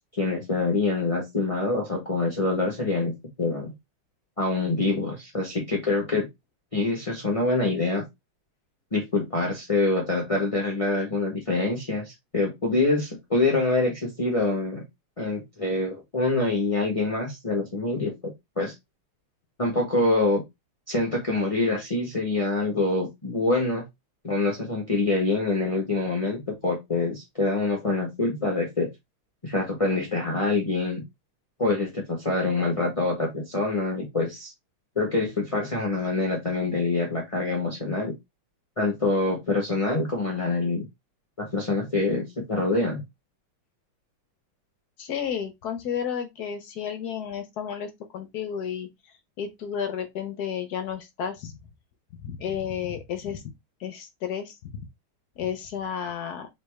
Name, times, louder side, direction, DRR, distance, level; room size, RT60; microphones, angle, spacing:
voice 1, 0.2-3.1 3.4-3.7 4.4-6.3 6.7-8.0 8.9-14.8 15.2-18.7 19.6-20.4 20.9-23.8 24.2-28.9 29.4-31.0 31.6-34.5 35.0-38.1 38.8-40.9 41.4-43.0, left 3 dB, 40° left, 0.4 m, -25 dB
voice 2, 45.0-48.9 49.4-51.6 52.2-53.4 53.8-54.9 55.4-56.5, left 8 dB, 65° left, 1.0 m, -32 dB
3.9 x 3.3 x 3.2 m
omnidirectional pair, 2.4 m